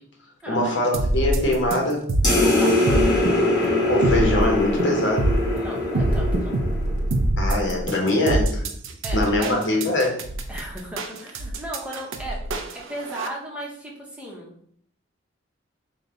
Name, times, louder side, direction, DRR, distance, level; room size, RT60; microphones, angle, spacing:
voice 1, 0.5-2.1 3.9-5.3 7.4-8.7 9.1-10.2, left 1 dB, 65° left, 0 dB, 1.0 m, -22 dB
sound 1, 0.9-13.3, right 1 dB, 85° right, 0.5 m, -25 dB
sound 2, 2.2-7.1, left 1 dB, 20° left, 1.4 m, -22 dB
voice 2, 2.2-3.1 5.5-6.6 9.0-9.5 10.5-12.4 12.9-14.5, right 1 dB, 5° right, -3 dB, 0.8 m, -35 dB
3.9 x 2.2 x 3.8 m, 0.63 s
head